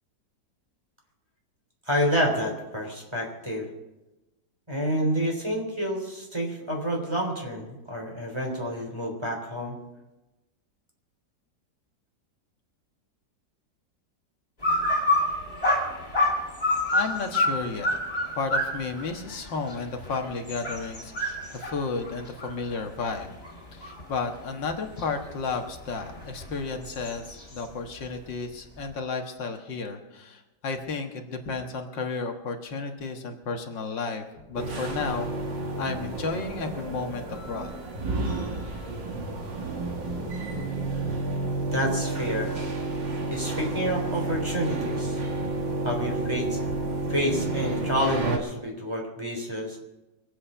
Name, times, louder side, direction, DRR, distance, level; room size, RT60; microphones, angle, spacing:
voice 1, 1.9-3.7 4.7-9.8 41.7-42.5 43.3-45.2 45.8-46.6 47.1-49.8, equal, 15° right, 0 dB, 3.7 m, -28 dB
sound 1, 14.6-24.2 24.7-27.6, left 1 dB, 20° left, 3.2 m, -28 dB
voice 2, 16.9-18.0 18.4-23.3 23.7-35.3 35.8-37.7, left 4 dB, 90° left, 4 dB, 2.2 m, -32 dB
sound 2, 34.6-48.4, right 2 dB, 85° right, 2.9 m, -31 dB
24.0 x 8.7 x 5.6 m, 1.0 s
omnidirectional pair, 1.9 m